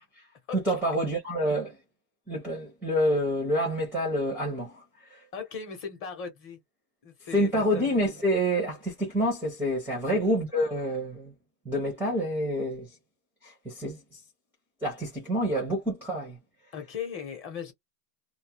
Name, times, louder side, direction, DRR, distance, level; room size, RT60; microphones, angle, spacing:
voice 1, 0.6-1.8 2.3-5.2 7.3-11.3 11.6-12.9 13.4-14.2 14.8-16.4, equal, 5° right, 0.5 m, -28 dB
voice 2, 5.3-6.6 7.0-7.8 10.1-10.2 16.7-17.7, left 6 dB, 25° left, 0.8 m, -38 dB
2.3 x 2.0 x 2.9 m
supercardioid pair, 145°, 50 cm